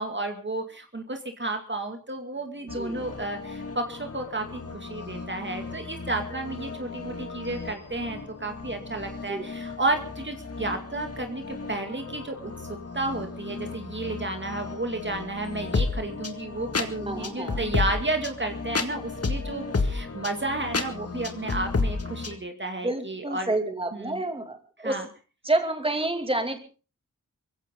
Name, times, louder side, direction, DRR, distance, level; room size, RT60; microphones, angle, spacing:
voice 1, 0.0-23.6 23.9-24.2 24.8-25.1, right 2 dB, 35° right, 5 dB, 2.3 m, -32 dB
sound 1, 2.7-22.4, left 3 dB, 50° left, 2.0 m, -33 dB
voice 2, 2.7-3.0 9.3-9.5 17.0-17.6 22.8-25.0 25.4-26.6, right 2 dB, 20° right, 6 dB, 2.5 m, -29 dB
22.5 x 16.0 x 3.8 m, 0.35 s
wide cardioid pair, 70°, 31 cm